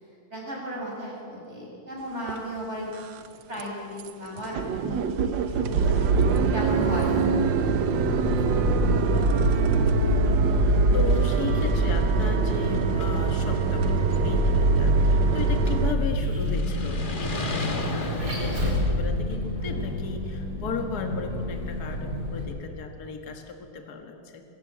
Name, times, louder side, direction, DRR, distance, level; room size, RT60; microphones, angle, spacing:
voice 1, 0.3-3.1 3.5-6.1 6.5-7.2, equal, 30° right, -3 dB, 6.5 m, -35 dB
sound 1, 2.3-2.4 2.9-3.3 3.6-3.7 4.0-4.1 4.4-15.9, right 5 dB, 65° right, 1.5 m, -25 dB
Vehicle, 5.5-22.4, equal, 45° right, 5.5 m, -27 dB
voice 2, 7.2-7.5 9.1-9.3 9.5-24.4, left 5 dB, 50° left, 4 dB, 2.1 m, -36 dB
sound 2, 10.1-10.2 10.8-15.9 16.4-18.6, left 3 dB, 30° left, 1.3 m, -38 dB
24.5 x 14.5 x 8.6 m, 2.5 s
omnidirectional pair, 2.3 m